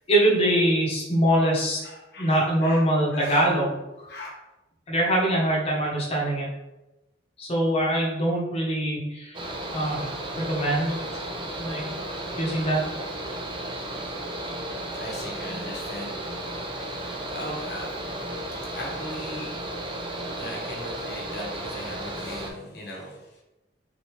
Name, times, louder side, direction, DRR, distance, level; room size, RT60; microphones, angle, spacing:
voice 1, 0.1-1.8 2.2-3.8 4.9-6.5 7.4-9.4 9.7-11.3 11.6-11.8 12.4-12.8, right 1 dB, 30° left, -3 dB, 1.0 m, -23 dB
voice 2, 1.8-3.4 4.1-4.3 14.9-16.9 17.2-17.9 18.7-19.5 20.4-23.2, left 1 dB, 55° left, -1 dB, 0.9 m, -38 dB
Mechanical fan, 9.3-22.5, right 1 dB, 25° right, 0.4 m, -34 dB
3.8 x 3.4 x 3.1 m, 1.0 s
head